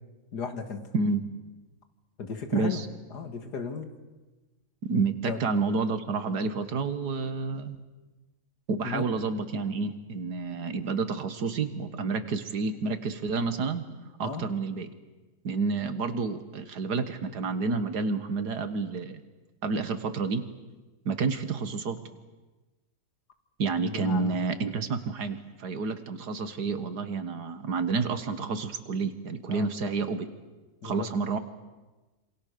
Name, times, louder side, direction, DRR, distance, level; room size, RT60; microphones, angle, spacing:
voice 1, 0.3-0.8 2.2-2.8 3.1-3.9 5.2-5.4 8.8-9.1 14.2-14.5 23.8-24.4 29.5-29.7 30.8-31.1, left 4 dB, 90° left, 7 dB, 2.6 m, -35 dB
voice 2, 2.5-2.9 4.8-7.8 8.7-13.8 14.2-14.9 15.4-19.2 19.6-20.4 21.1-22.0 23.6-30.3 30.8-31.4, right 4 dB, 80° right, 10 dB, 2.2 m, -29 dB
27.0 x 27.0 x 6.8 m, 1.2 s
omnidirectional pair, 1.7 m